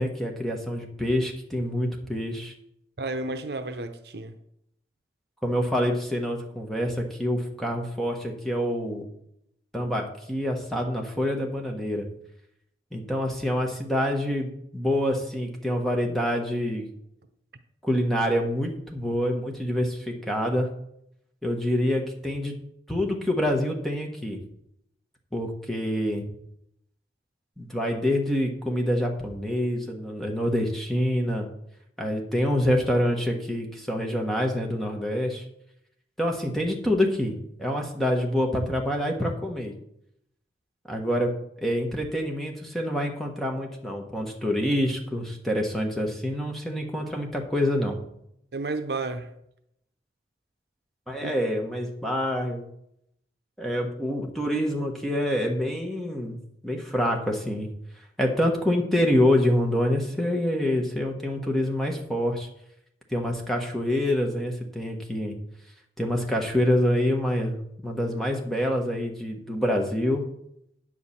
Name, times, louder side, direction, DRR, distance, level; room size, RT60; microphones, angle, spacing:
voice 1, 0.0-2.5 5.4-9.0 9.7-12.0 12.9-16.9 17.8-20.7 21.4-22.5 22.9-24.4 25.3-26.3 27.6-31.5 32.0-35.4 36.2-39.7 40.9-41.3 41.6-48.0 51.1-52.6 53.6-56.4 56.6-57.7 58.2-62.5 63.1-65.3 66.0-67.6 67.8-70.2, equal, ahead, 1.2 m, -26 dB
voice 2, 3.0-4.4 48.5-49.3 51.2-51.3, right 3 dB, 65° right, 0.7 m, -32 dB
9.5 x 4.8 x 7.1 m
head